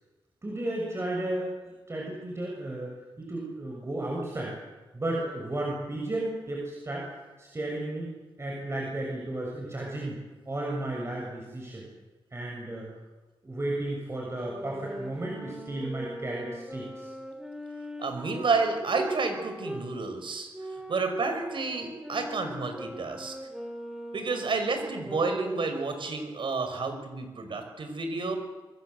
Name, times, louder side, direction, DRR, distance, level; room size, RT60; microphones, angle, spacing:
voice 1, 0.4-4.6 4.9-7.1 7.4-8.1 8.4-10.2 10.5-11.9 12.3-12.9 13.4-17.1, right 1 dB, 30° right, -2 dB, 7.0 m, -33 dB
sound 1, 14.4-19.9 20.5-25.7, equal, 5° right, 5.5 m, -41 dB
voice 2, 18.0-23.3 24.1-28.4, right 4 dB, 70° right, 6 dB, 5.9 m, -30 dB
26.5 x 23.0 x 8.1 m, 1.2 s
cardioid pair, 80°, 9 cm